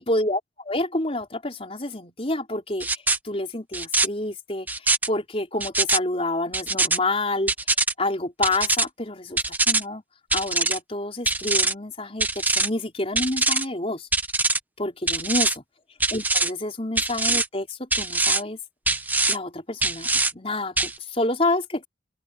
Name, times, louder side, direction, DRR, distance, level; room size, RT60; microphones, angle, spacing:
voice 1, 0.0-2.9 3.2-7.5 8.0-10.0 10.3-14.1 14.8-15.6 16.1-18.6 19.3-21.9, left 2 dB, 35° left, 4.6 m, -28 dB
sound 1, 2.8-3.2 3.7-4.1 4.7-5.1 5.6-6.0 6.5-7.0 7.5-7.9 8.4-8.8 9.4-9.8 10.3-10.8 11.3-11.7 12.2-12.7 13.2-13.6 14.1-14.6 15.1-15.5 16.0-16.5 17.0-17.5 17.9-18.4 18.9-19.4 19.8-20.3 20.8-20.9, right 3 dB, 10° right, 0.9 m, -22 dB
open air
head